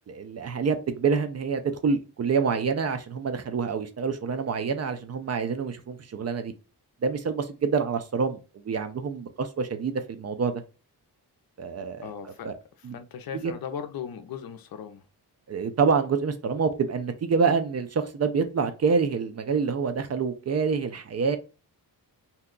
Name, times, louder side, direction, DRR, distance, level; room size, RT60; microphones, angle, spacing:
voice 1, 0.1-6.5 7.0-8.4 8.6-10.6 11.6-12.5 12.8-12.9 13.3-13.5 15.5-21.4, right 5 dB, 40° right, 0.4 m, -27 dB
voice 2, 12.0-12.5 12.9-15.0, left 7 dB, 60° left, 0.6 m, -37 dB
2.8 x 2.2 x 3.7 m
wide cardioid pair, 135°, 40 cm